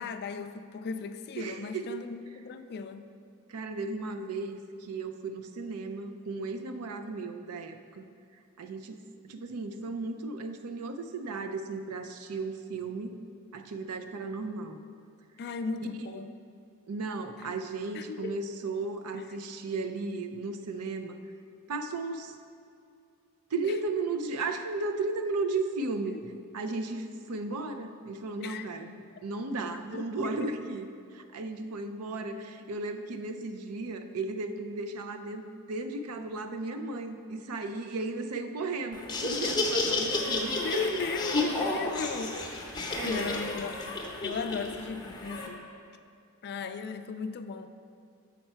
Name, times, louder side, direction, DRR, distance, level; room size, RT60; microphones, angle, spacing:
voice 1, 0.0-3.1 15.4-16.3 17.9-18.3 19.1-19.2 23.6-23.7 28.4-28.7 29.9-30.0 40.6-42.4 42.8-43.8 44.2-45.7 46.4-47.7, left 5 dB, 45° left, 9 dB, 0.3 m, -36 dB
voice 2, 1.4-2.0 3.5-8.1 8.6-9.0 9.3-13.2 13.5-14.8 16.9-21.2 21.7-22.3 23.5-41.2 42.2-42.5 42.9-43.4, right 3 dB, 85° right, 7 dB, 0.5 m, -35 dB
Laughter, 38.9-45.5, left 2 dB, 20° left, 0.7 m, -31 dB
7.1 x 5.6 x 4.4 m, 2.4 s
head